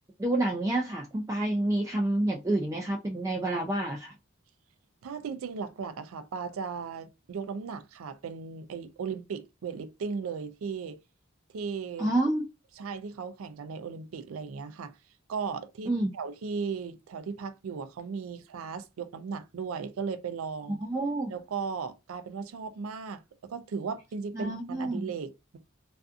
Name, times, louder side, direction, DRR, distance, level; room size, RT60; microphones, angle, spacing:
voice 1, 0.2-4.1 12.0-12.4 15.9-16.1 20.8-21.3 24.3-25.1, right 1 dB, 15° right, 0.3 m, -28 dB
voice 2, 5.0-11.0 11.5-12.1 12.8-15.0 15.3-20.8 21.3-25.6, right 5 dB, 90° right, 0.4 m, -36 dB
2.4 x 2.3 x 2.5 m
head